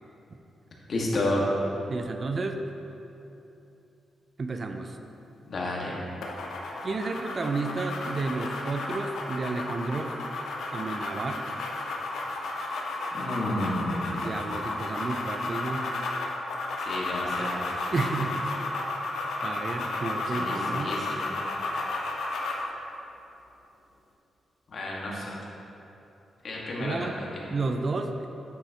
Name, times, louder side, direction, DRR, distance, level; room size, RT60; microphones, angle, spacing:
voice 1, 0.9-1.4 5.5-6.0 13.1-14.3 16.9-17.6 20.3-21.3 24.7-25.4 26.4-27.4, left 1 dB, 55° left, -4 dB, 1.6 m, -31 dB
voice 2, 1.9-2.6 4.4-5.0 6.8-10.1 10.7-11.5 14.1-15.8 17.9-18.3 19.4-20.9 26.8-27.2 27.5-28.3, right 3 dB, 45° right, 6 dB, 0.5 m, -31 dB
sound 1, 6.2-22.7, left 2 dB, 85° left, 0.8 m, -33 dB
9.2 x 6.8 x 2.9 m, 2.9 s
cardioid pair, 85°, 0 cm